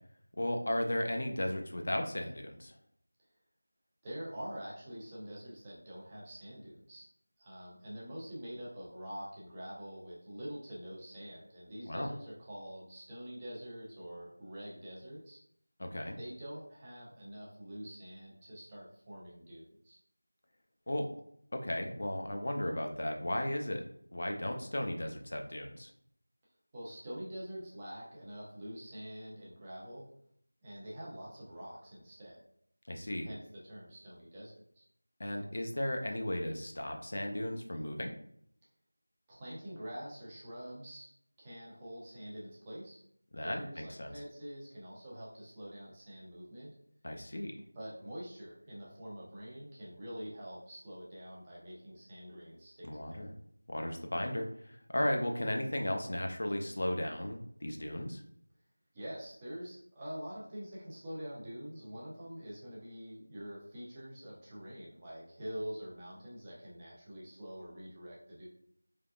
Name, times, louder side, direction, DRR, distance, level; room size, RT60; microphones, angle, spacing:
voice 1, 0.4-2.7 11.9-12.1 15.8-16.2 20.9-21.1 21.5-23.8 24.1-25.9 32.9-33.3 35.2-38.1 43.3-44.1 47.0-47.5 52.8-53.3 53.7-58.2, left 1 dB, 50° left, 3 dB, 0.5 m, -35 dB
voice 2, 4.0-7.1 7.4-15.4 16.2-20.0 26.7-30.1 30.6-32.4 33.2-34.9 39.3-41.1 41.4-43.0 43.4-46.7 47.7-53.2 58.9-68.5, equal, 15° right, -6 dB, 0.7 m, -45 dB
3.6 x 3.4 x 2.3 m, 0.69 s
figure-of-eight pair, 175°, 0 cm